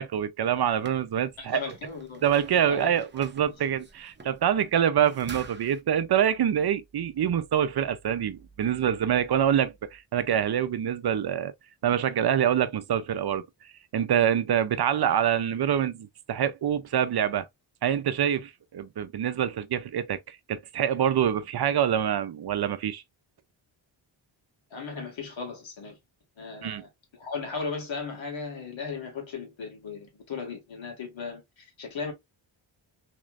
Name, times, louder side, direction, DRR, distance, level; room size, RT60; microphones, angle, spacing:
voice 1, 0.0-1.6 2.2-11.5 11.8-13.5 13.9-17.5 17.8-23.0 26.6-26.8, right 9 dB, 55° right, 0.6 m, -25 dB
sound 1, 0.6-5.8, right 4 dB, 25° right, 0.8 m, -48 dB
voice 2, 1.4-2.3 2.7-3.0 3.5-3.6 24.7-26.0 26.4-32.1, left 4 dB, 75° left, 2.0 m, -36 dB
3.7 x 3.1 x 2.4 m
cardioid pair, 80°, 47 cm